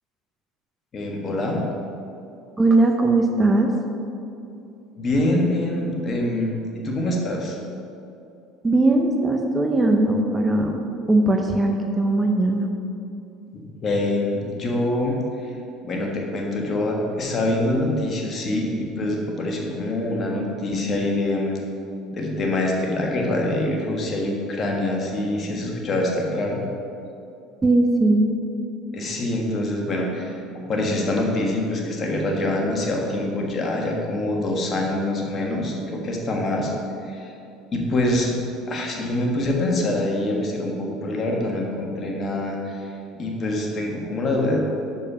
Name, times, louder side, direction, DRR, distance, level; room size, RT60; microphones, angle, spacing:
voice 1, 0.9-1.6 5.0-7.6 13.5-15.2 15.8-21.6 22.1-26.7 28.9-36.7 37.0-37.3 37.7-38.3 38.7-44.6, left 1 dB, 40° left, 0 dB, 1.4 m, -25 dB
voice 2, 2.6-3.7 8.6-12.7 27.6-28.3, right 2 dB, 20° right, 3 dB, 0.7 m, -19 dB
6.4 x 5.4 x 5.6 m, 2.7 s
supercardioid pair, 95°, 0 cm